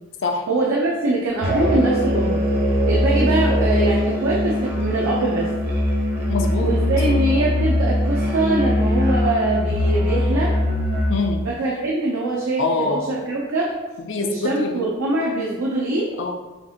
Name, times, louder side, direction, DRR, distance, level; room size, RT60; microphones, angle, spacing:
voice 1, 0.5-2.4 2.8-5.5 6.6-10.6 11.4-13.7 14.2-16.1, right 2 dB, 85° right, -3 dB, 0.6 m, -23 dB
Musical instrument, 1.4-11.3, left 1 dB, 45° right, 0.8 m, -21 dB
voice 2, 6.3-6.8 11.1-11.4 12.6-13.1 14.0-14.9 16.2-16.3, left 3 dB, 60° left, 4 dB, 0.4 m, -24 dB
6.4 x 2.4 x 2.8 m, 1.2 s
head